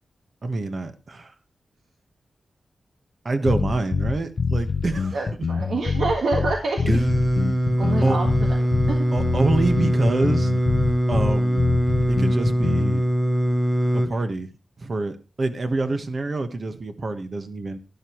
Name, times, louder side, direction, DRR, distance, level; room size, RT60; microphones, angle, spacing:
voice 1, 0.4-1.3 3.2-5.2 6.9-7.0 8.0-8.2 9.1-10.5 11.1-11.8 12.1-13.0 14.0-14.5 14.8-17.8, right 2 dB, 40° right, 9 dB, 1.2 m, -26 dB
sound 1, 3.5-13.0, left 5 dB, 55° left, 0.6 m, -26 dB
voice 2, 5.1-6.9 7.8-8.6 8.9-9.2, right 3 dB, 75° right, 2 dB, 1.6 m, -27 dB
Singing, 6.9-14.1, equal, 5° right, 0.9 m, -22 dB
12.0 x 11.5 x 3.1 m, 0.31 s
wide cardioid pair, 140°, 0 cm